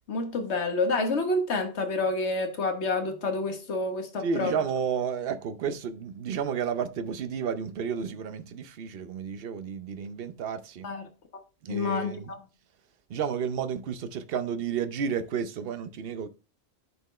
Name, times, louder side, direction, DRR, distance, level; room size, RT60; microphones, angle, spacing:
voice 1, 0.1-4.5 10.8-11.0 11.7-12.2, left 3 dB, 90° left, 1.4 m, -28 dB
voice 2, 4.2-10.9 11.6-12.3 13.1-16.3, right 7 dB, 65° right, 0.9 m, -31 dB
11.0 x 4.5 x 3.1 m
omnidirectional pair, 1.1 m